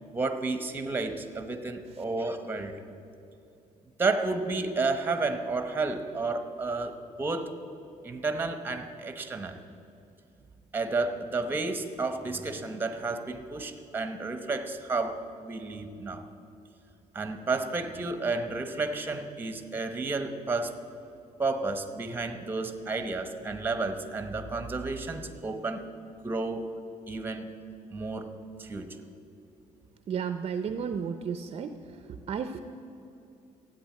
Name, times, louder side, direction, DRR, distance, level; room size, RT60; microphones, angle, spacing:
voice 1, 0.1-2.7 4.0-7.5 8.0-9.6 10.7-16.2 17.1-20.7 21.4-25.9 26.2-26.7 27.1-27.6 27.9-29.0, right 3 dB, 15° right, 8 dB, 0.9 m, -31 dB
voice 2, 30.1-31.7 32.0-32.6, right 7 dB, 45° right, 9 dB, 0.5 m, -33 dB
13.5 x 9.1 x 8.4 m, 2.7 s
cardioid pair, 160°, 14 cm